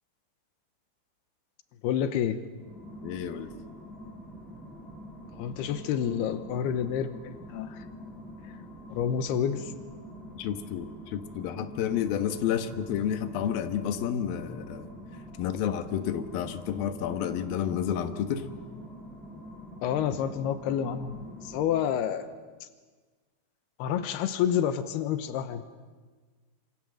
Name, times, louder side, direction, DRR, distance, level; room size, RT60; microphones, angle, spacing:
voice 1, 1.8-2.4 5.3-7.9 8.9-9.7 19.8-22.3 22.6-22.7 23.8-25.6, left 9 dB, 90° left, 9 dB, 3.1 m, -29 dB
sound 1, 2.5-22.2, equal, ahead, 6.9 m, -45 dB
voice 2, 3.0-3.5 10.4-14.9 15.4-18.5, left 9 dB, 70° left, 7 dB, 3.0 m, -30 dB
27.5 x 26.0 x 7.7 m, 1.4 s
omnidirectional pair, 4.5 m